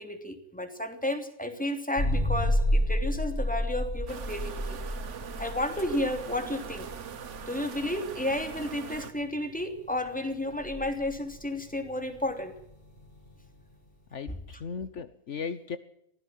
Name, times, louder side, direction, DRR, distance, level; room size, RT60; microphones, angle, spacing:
voice 1, 0.0-4.8 5.4-6.9 7.5-12.5, left 1 dB, 5° left, 6 dB, 3.0 m, -32 dB
sound 1, 2.0-13.6, equal, 35° left, 4.4 m, -31 dB
sound 2, 4.1-9.1, right 7 dB, 65° right, 1.5 m, -42 dB
voice 2, 14.1-15.8, left 5 dB, 65° left, 12 dB, 1.3 m, -36 dB
23.5 x 16.5 x 7.5 m, 0.77 s
omnidirectional pair, 1.4 m